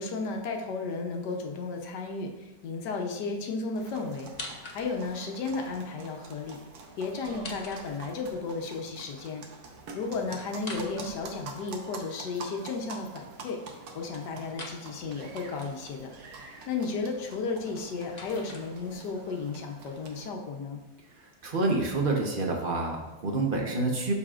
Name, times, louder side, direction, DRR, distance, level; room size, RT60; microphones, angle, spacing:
voice 1, 0.0-4.3 4.7-6.6 7.0-9.4 9.9-13.6 13.9-16.1 16.7-20.8, left 4 dB, 75° left, 2 dB, 1.4 m, -34 dB
sound 1, 3.8-20.3, right 3 dB, 65° right, 1.2 m, -46 dB
sound 2, 4.2-5.2 7.2-8.4 10.5-11.8 14.5-14.8 17.6-19.2, left 2 dB, 40° left, 0.6 m, -44 dB
voice 2, 21.4-24.1, right 2 dB, 35° right, 0 dB, 1.0 m, -28 dB
12.0 x 4.2 x 2.5 m, 1.1 s
omnidirectional pair, 1.8 m